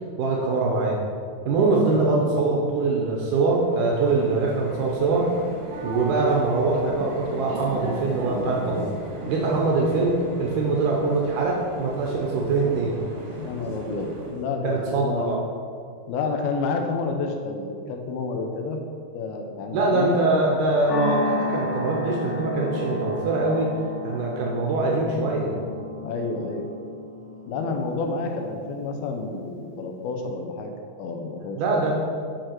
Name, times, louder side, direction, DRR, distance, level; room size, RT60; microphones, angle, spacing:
voice 1, 0.2-1.0 1.5-5.3 5.8-8.9 9.3-13.0 14.6-15.4 19.7-23.7 24.0-25.6 31.5-31.9, right 3 dB, 80° right, -2 dB, 1.8 m, -23 dB
voice 2, 2.0-2.4 13.4-15.4 16.1-18.8 19.1-20.2 26.0-26.6 27.5-30.7 31.0-31.6, left 4 dB, 80° left, 3 dB, 2.6 m, -29 dB
sound 1, 3.6-14.5, right 2 dB, 65° right, 1.6 m, -36 dB
sound 2, 20.9-29.4, left 2 dB, 45° left, 2.2 m, -33 dB
7.8 x 4.8 x 4.5 m, 2.3 s
omnidirectional pair, 4.4 m